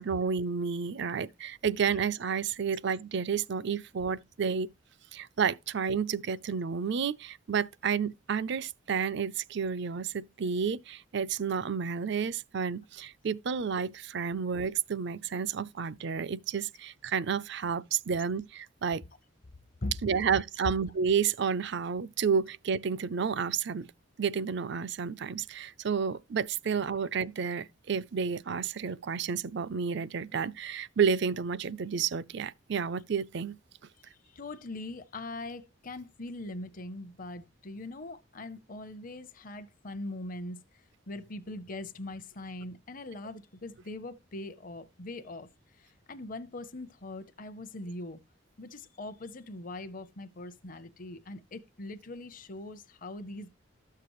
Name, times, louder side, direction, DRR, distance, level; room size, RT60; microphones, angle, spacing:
voice 1, 0.0-4.7 5.1-19.0 20.0-23.9 24.2-33.6, right 6 dB, 60° right, 0.5 m, -31 dB
voice 2, 34.0-40.6 41.1-45.5 45.8-48.2 48.6-53.5, left 2 dB, 45° left, 0.7 m, -41 dB
13.0 x 6.7 x 3.0 m
head